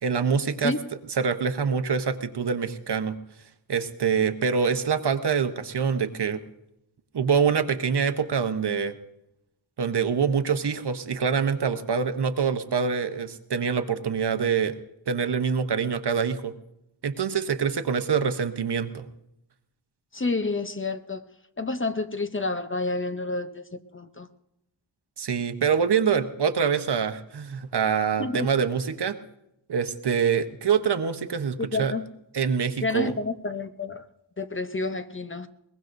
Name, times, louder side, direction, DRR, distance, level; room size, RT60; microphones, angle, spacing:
voice 1, 0.0-0.7 1.2-3.2 3.7-6.4 7.1-8.9 9.8-14.8 15.1-16.5 17.0-19.1 25.2-29.2 29.7-31.9 32.3-33.1, right 6 dB, 60° right, 1.0 m, -25 dB
voice 2, 20.1-21.3 21.6-24.3 28.2-28.5 31.6-32.1 32.8-34.1 34.4-35.5, left 3 dB, 25° left, 0.7 m, -29 dB
22.5 x 20.5 x 2.6 m
wide cardioid pair, 100°, 46 cm